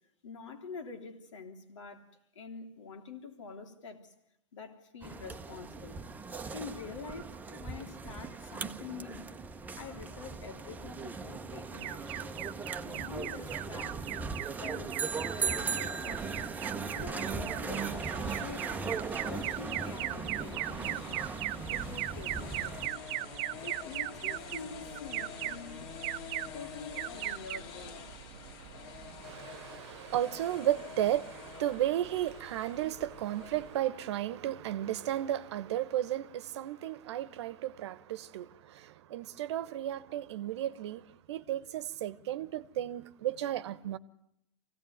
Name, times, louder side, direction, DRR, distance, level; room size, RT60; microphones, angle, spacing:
voice 1, 0.2-2.1 2.4-4.1 4.5-6.0 6.5-9.3 9.8-12.3 12.8-14.3 14.6-15.0 15.3-16.5 16.9-18.8 19.2-21.3 21.6-22.8 23.6-25.9 26.5-28.1, left 5 dB, 85° left, 3.4 m, -46 dB
sound 1, 5.0-22.9, right 4 dB, 10° right, 1.0 m, -38 dB
Alarm, 11.8-29.4, right 16 dB, 40° right, 0.8 m, -39 dB
sound 2, 16.2-33.8, left 7 dB, 55° left, 2.4 m, -48 dB
voice 2, 29.2-44.0, right 12 dB, 65° right, 1.1 m, -34 dB
25.0 x 17.0 x 9.4 m
hypercardioid pair, 130°, 15 cm